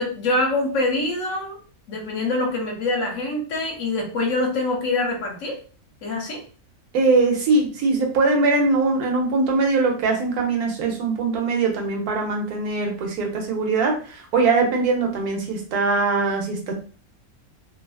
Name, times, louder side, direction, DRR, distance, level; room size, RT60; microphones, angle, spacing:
voice 1, 0.0-1.6 1.9-5.6 6.0-6.4, left 2 dB, 65° left, 2 dB, 1.0 m, -24 dB
voice 2, 6.9-16.7, right 3 dB, 90° right, 1 dB, 1.2 m, -21 dB
2.8 x 2.3 x 2.3 m, 0.38 s
omnidirectional pair, 1.6 m